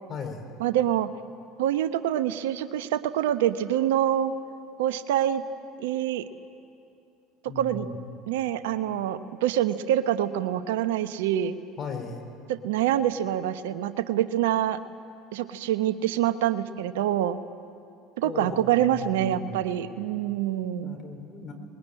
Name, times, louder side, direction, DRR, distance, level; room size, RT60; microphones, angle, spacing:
voice 1, 0.1-0.4 7.5-8.0 11.8-12.2 18.2-19.6 20.7-21.5, left 4 dB, 45° left, 4 dB, 4.3 m, -37 dB
voice 2, 0.6-1.1 1.6-4.3 4.8-5.4 5.8-6.2 7.6-7.9 8.3-11.6 12.5-14.8 15.3-17.4 18.2-21.0, right 11 dB, 75° right, 12 dB, 0.9 m, -26 dB
22.0 x 21.0 x 8.8 m, 2.7 s
hypercardioid pair, 70°, 0 cm